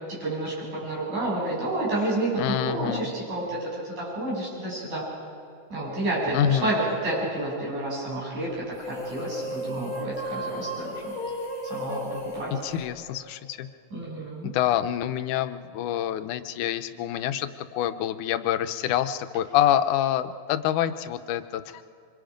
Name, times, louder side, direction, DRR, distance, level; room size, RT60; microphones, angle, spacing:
voice 1, 0.1-5.0 5.7-11.1 11.7-12.5 13.9-14.5, right 1 dB, 75° right, -6 dB, 9.3 m, -30 dB
voice 2, 2.4-3.1 6.3-6.7 12.5-13.7 14.4-21.8, left 11 dB, 85° left, 10 dB, 2.2 m, -26 dB
sound 1, 8.7-13.5, equal, 15° left, 2.1 m, -35 dB
26.5 x 25.0 x 5.2 m, 2.4 s
omnidirectional pair, 3.5 m